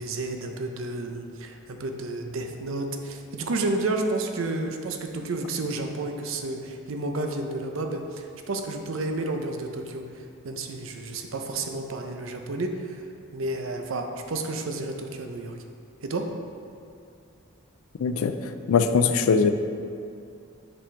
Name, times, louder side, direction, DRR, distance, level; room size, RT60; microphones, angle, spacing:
voice 1, 0.0-13.0 13.3-15.5 16.0-16.2, right 2 dB, 70° right, 4 dB, 0.6 m, -31 dB
voice 2, 18.0-18.3 18.7-19.5, left 5 dB, 80° left, 9 dB, 0.4 m, -21 dB
7.6 x 4.3 x 3.3 m, 2.6 s
head